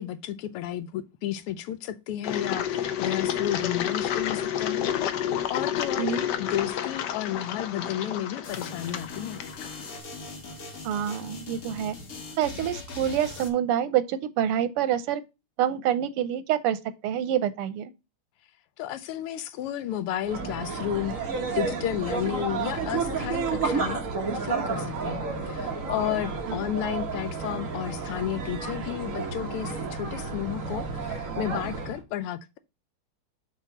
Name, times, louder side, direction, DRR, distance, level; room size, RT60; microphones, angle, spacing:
voice 1, 0.0-6.1 6.3-9.4 18.8-24.0 24.3-32.6, left 11 dB, 85° left, 1.6 m, -32 dB
Engine, 2.2-10.0, left 9 dB, 70° left, 1.1 m, -30 dB
sound 1, 8.4-13.5, left 3 dB, 45° left, 1.6 m, -40 dB
voice 2, 10.8-12.0 12.4-15.2 15.6-17.9 26.5-26.6, right 10 dB, 85° right, 1.7 m, -27 dB
sound 2, 20.2-32.0, right 4 dB, 45° right, 1.3 m, -31 dB
6.6 x 3.6 x 5.8 m
omnidirectional pair, 2.4 m